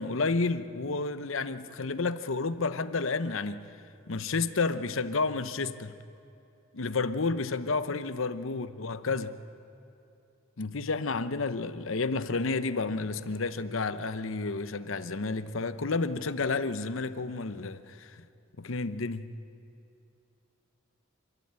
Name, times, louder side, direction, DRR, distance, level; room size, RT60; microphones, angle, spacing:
voice 1, 0.0-3.6 4.1-5.9 6.7-9.4 10.6-18.2 18.6-19.3, left 3 dB, 75° left, 12 dB, 0.8 m, -31 dB
27.0 x 13.0 x 8.8 m, 2.7 s
head